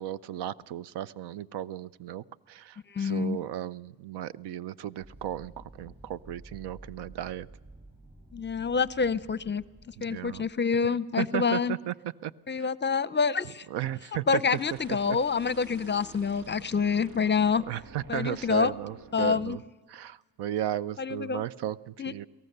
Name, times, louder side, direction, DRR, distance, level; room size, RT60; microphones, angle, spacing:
voice 1, 0.0-7.5 10.0-10.4 11.2-11.9 12.2-12.3 12.6-12.7 13.7-14.3 14.9-15.2 17.7-19.6 19.9-22.3, right 11 dB, 80° right, 18 dB, 0.6 m, -35 dB
voice 2, 2.9-3.4 8.3-11.8 12.5-13.7 14.3-17.6 18.1-18.7 19.1-19.6 21.0-21.4 22.0-22.1, left 5 dB, 25° left, 18 dB, 0.6 m, -27 dB
sound 1, 5.0-10.5, right 1 dB, 25° right, 6.6 m, -51 dB
sound 2, 14.4-19.7, right 3 dB, 55° right, 1.9 m, -50 dB
23.0 x 17.5 x 6.7 m, 1.3 s
cardioid pair, 75°, 40 cm